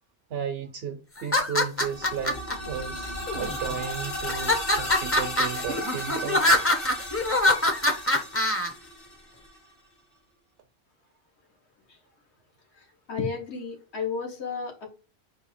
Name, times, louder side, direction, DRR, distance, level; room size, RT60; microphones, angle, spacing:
voice 1, 0.3-6.5, right 8 dB, 70° right, 0.8 m, -34 dB
sound 1, 1.2-2.5 3.3-3.8 4.3-8.7, left 1 dB, 15° left, 0.5 m, -24 dB
sound 2, 1.7-9.6, left 1 dB, 60° left, 1.3 m, -35 dB
voice 2, 12.7-14.9, left 5 dB, 80° left, 1.5 m, -33 dB
4.4 x 2.7 x 4.2 m
omnidirectional pair, 1.1 m